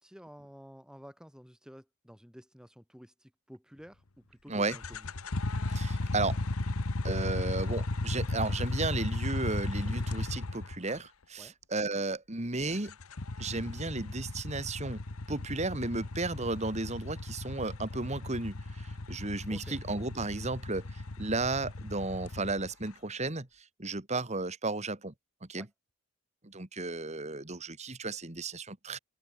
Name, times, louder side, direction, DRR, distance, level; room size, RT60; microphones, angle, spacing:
voice 1, 0.0-5.1 11.4-11.5 19.5-19.8 25.5-25.7, equal, 5° right, 2.5 m, -51 dB
sound 1, 4.6-11.0 12.8-22.9, left 2 dB, 90° left, 1.3 m, -35 dB
voice 2, 5.7-6.4 7.0-12.9 13.4-15.0 15.3-23.5 23.8-25.1 25.5-25.7 26.4-29.0, right 3 dB, 30° right, 2.0 m, -34 dB
open air
head